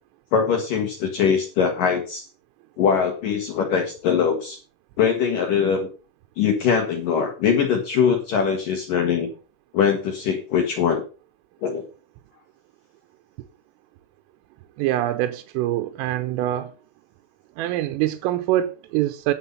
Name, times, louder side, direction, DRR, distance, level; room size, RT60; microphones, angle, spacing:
voice 1, 0.3-2.2 2.8-4.6 5.0-5.9 6.4-9.3 9.7-11.0 11.6-11.8, left 7 dB, 75° left, 2.0 m, -22 dB
voice 2, 14.8-16.7 17.6-19.3, right 13 dB, 85° right, 3.3 m, -24 dB
10.0 x 7.8 x 5.6 m
omnidirectional pair, 6.0 m